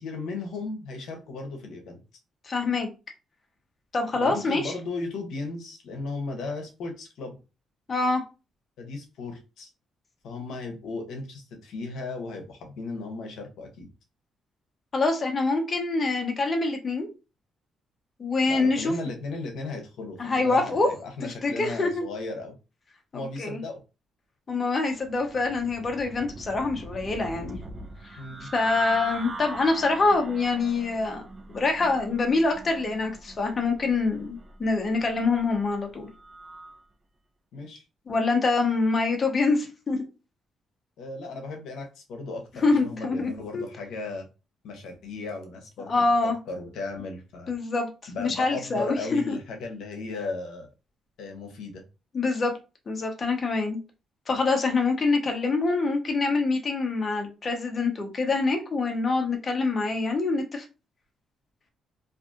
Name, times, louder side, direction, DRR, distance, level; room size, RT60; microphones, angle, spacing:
voice 1, 0.0-2.0 4.1-7.4 8.8-9.7 10.2-13.9 18.5-22.5 23.1-23.8 28.2-28.5 37.5-37.8 41.0-44.3 44.6-46.1 46.5-47.5 48.1-50.7 51.2-51.8, left 3 dB, 80° left, 0.8 m, -36 dB
voice 2, 2.5-2.9 3.9-4.7 7.9-8.2 14.9-17.1 18.2-18.9 20.2-20.9 21.4-22.0 23.1-23.6 24.5-27.6 28.0-36.1 38.1-40.0 42.6-43.6 45.8-46.4 47.5-47.9 48.2-49.3 52.1-52.5 52.9-53.8 54.3-60.6, left 3 dB, 40° left, 0.8 m, -25 dB
sound 1, 24.9-36.8, right 2 dB, 40° right, 0.6 m, -42 dB
2.5 x 2.5 x 2.5 m
cardioid pair, 90°, 0 cm